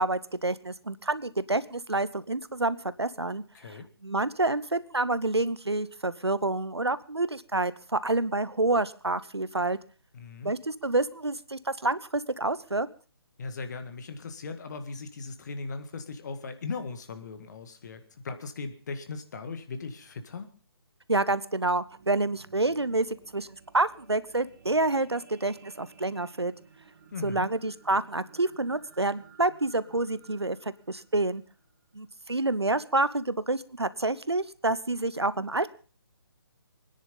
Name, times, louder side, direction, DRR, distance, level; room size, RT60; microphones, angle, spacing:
voice 1, 0.0-9.8 10.4-12.9 21.1-23.5 23.7-26.5 27.2-31.4 31.9-35.7, right 2 dB, 90° right, 16 dB, 0.9 m, -28 dB
voice 2, 3.5-3.9 10.1-10.5 13.4-20.5 27.1-27.5, left 4 dB, 45° left, 8 dB, 1.9 m, -38 dB
sound 1, 21.7-32.1 32.7-32.8, right 6 dB, 45° right, 2.2 m, -56 dB
23.5 x 10.0 x 5.3 m, 0.38 s
figure-of-eight pair, 145°, 13 cm